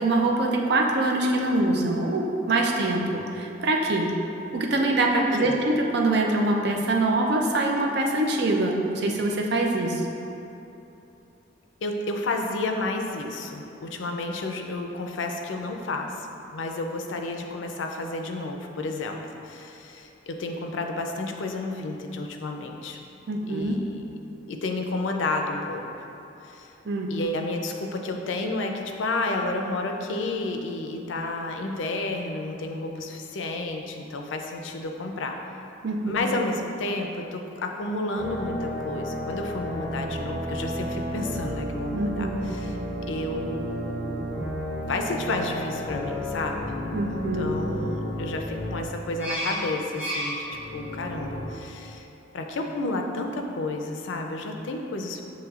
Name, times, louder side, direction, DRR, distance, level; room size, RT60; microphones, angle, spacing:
voice 1, 0.0-4.1 4.5-10.0 23.3-23.8 26.9-27.1 35.8-36.2 41.9-42.4 46.9-47.6, right 2 dB, 65° right, 1 dB, 0.5 m, -24 dB
voice 2, 5.1-5.6 11.8-16.3 16.5-23.0 23.5-24.1 24.5-26.1 26.4-26.7 27.1-35.4 36.0-42.8 43.1-44.3 44.8-46.6 47.3-50.5 50.7-52.1 52.3-55.2, left 2 dB, 90° left, 3 dB, 0.4 m, -31 dB
sound 1, 38.1-51.5, equal, 10° right, 1.3 m, -32 dB
7.3 x 3.0 x 2.4 m, 3.0 s
head